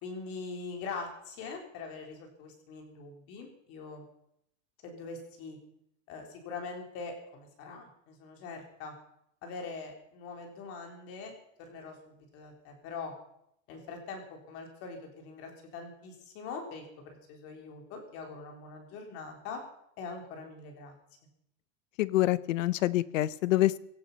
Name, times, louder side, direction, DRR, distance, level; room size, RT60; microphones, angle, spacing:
voice 1, 0.0-4.0 4.8-5.6 6.1-8.9 9.4-11.3 11.6-13.1 13.7-19.6 20.0-20.9, left 4 dB, 35° left, 3 dB, 4.0 m, -43 dB
voice 2, 22.0-23.8, left 16 dB, 70° left, 18 dB, 0.9 m, -26 dB
17.0 x 14.5 x 5.6 m, 0.75 s
supercardioid pair, 165°, 40 cm